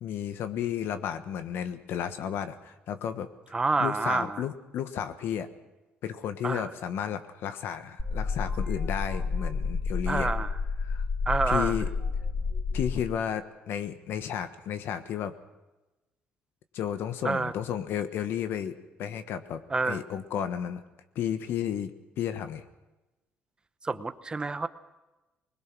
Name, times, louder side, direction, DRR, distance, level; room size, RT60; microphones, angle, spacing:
voice 1, 0.0-3.3 3.8-5.5 6.0-10.3 10.8-11.1 11.5-11.9 12.7-15.3 16.7-18.7 19.0-20.8 21.1-22.6, left 9 dB, 70° left, 10 dB, 1.3 m, -33 dB
voice 2, 3.5-4.4 6.4-6.7 10.1-10.5 11.3-11.8 17.2-17.5 19.7-20.0 23.8-24.7, right 3 dB, 20° right, 12 dB, 0.9 m, -28 dB
sound 1, 8.0-13.0, left 4 dB, 15° left, 4.0 m, -30 dB
21.0 x 20.5 x 6.2 m, 1.1 s
cardioid pair, 105°, 4 cm